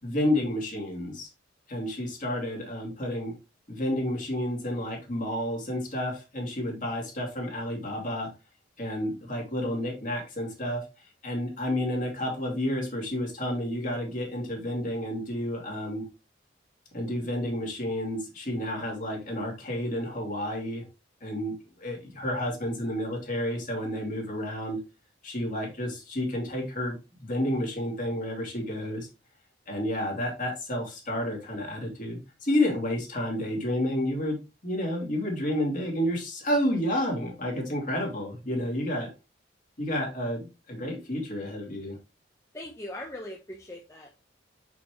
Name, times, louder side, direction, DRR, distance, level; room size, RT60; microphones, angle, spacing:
voice 1, 0.0-1.3 1.7-3.4 3.7-8.3 8.8-16.1 16.9-20.8 21.2-24.8 25.2-29.1 29.7-39.1 39.8-42.0, left 1 dB, 45° left, 0 dB, 2.8 m, -30 dB
voice 2, 42.5-44.2, left 1 dB, 15° left, 0 dB, 0.9 m, -40 dB
6.9 x 6.0 x 3.1 m, 0.29 s
head